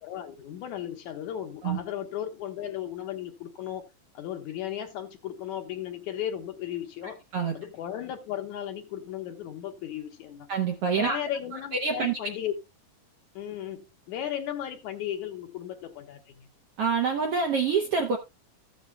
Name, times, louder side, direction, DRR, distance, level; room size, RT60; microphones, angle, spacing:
voice 1, 0.0-3.9 4.1-7.2 7.5-10.5 10.9-12.5 13.4-16.5, left 10 dB, 70° left, 2.0 m, -35 dB
voice 2, 10.5-11.2 11.8-12.2 16.8-18.2, right 5 dB, 70° right, 1.4 m, -26 dB
14.5 x 8.0 x 2.2 m
omnidirectional pair, 3.9 m